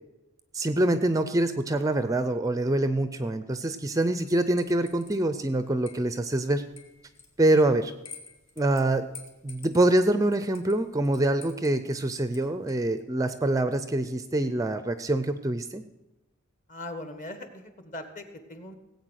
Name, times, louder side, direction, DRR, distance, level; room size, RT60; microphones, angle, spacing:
voice 1, 0.5-6.6 7.4-7.9 8.6-9.1 9.4-15.8, right 1 dB, 15° right, 11 dB, 0.4 m, -25 dB
sound 1, 4.2-13.0, left 5 dB, 60° left, 2.3 m, -52 dB
voice 2, 16.7-18.7, left 1 dB, 35° left, 8 dB, 1.5 m, -40 dB
17.5 x 8.3 x 6.4 m, 1.0 s
head